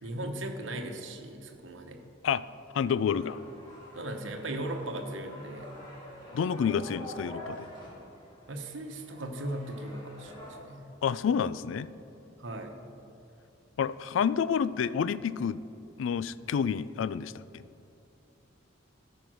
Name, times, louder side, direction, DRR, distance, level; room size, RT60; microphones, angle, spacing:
voice 1, 0.0-2.0 3.9-5.7 8.5-11.0 12.4-12.8, right 1 dB, 75° right, 4 dB, 1.0 m, -38 dB
voice 2, 2.7-3.4 6.3-7.7 11.0-11.9 13.8-15.6 16.0-17.6, left 7 dB, 80° left, 16 dB, 0.3 m, -29 dB
sound 1, 3.0-10.6, equal, 25° left, 2.8 m, -47 dB
13.5 x 5.2 x 6.2 m, 2.8 s
head